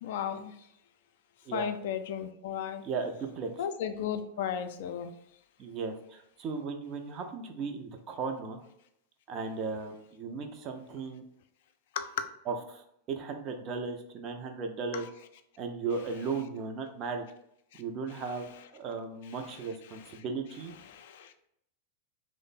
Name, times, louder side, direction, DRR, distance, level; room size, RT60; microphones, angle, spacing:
voice 1, 0.0-0.5 1.5-2.8 3.6-5.1 11.9-12.2 14.9-15.0 17.7-17.8 20.0-20.1 20.9-21.5, left 8 dB, 55° left, 8 dB, 0.3 m, -35 dB
voice 2, 2.8-3.5 5.6-8.6 9.3-11.2 12.5-15.1 15.6-17.3 17.8-18.5 18.7-20.7, right 4 dB, 35° right, 4 dB, 0.4 m, -36 dB
3.1 x 2.0 x 3.9 m, 0.75 s
figure-of-eight pair, 90°, 0 cm